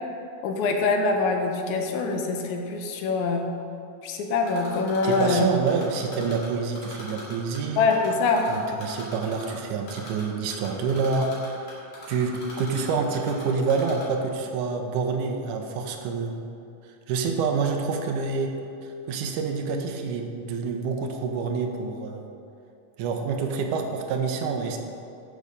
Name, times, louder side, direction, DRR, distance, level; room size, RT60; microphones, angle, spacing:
voice 1, 0.4-3.5 4.0-5.5 7.8-8.5, left 4 dB, 75° left, 3 dB, 2.1 m, -24 dB
Typing, 4.5-6.5 6.8-7.6 7.9-9.5 9.9-10.2 10.5-13.4 13.7-14.0, left 2 dB, 50° left, 3.0 m, -41 dB
voice 2, 5.0-7.9 8.5-11.7 12.1-16.4 17.1-18.5 18.8-22.3 23.0-24.8, right 5 dB, 85° right, 4 dB, 2.2 m, -27 dB
6.9 x 6.2 x 6.7 m, 2.6 s
omnidirectional pair, 3.5 m